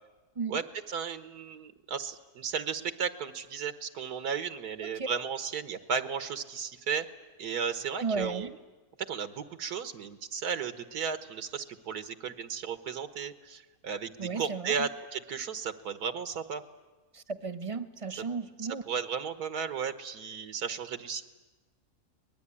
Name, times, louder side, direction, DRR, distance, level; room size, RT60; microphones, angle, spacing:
voice 1, 0.5-7.1 7.4-8.6 9.1-16.6 18.9-21.2, right 6 dB, 80° right, 11 dB, 1.7 m, -34 dB
voice 2, 8.0-8.5 14.2-14.9 17.1-18.8, right 4 dB, 25° right, 12 dB, 1.0 m, -34 dB
24.0 x 20.0 x 9.8 m, 1.2 s
omnidirectional pair, 1.6 m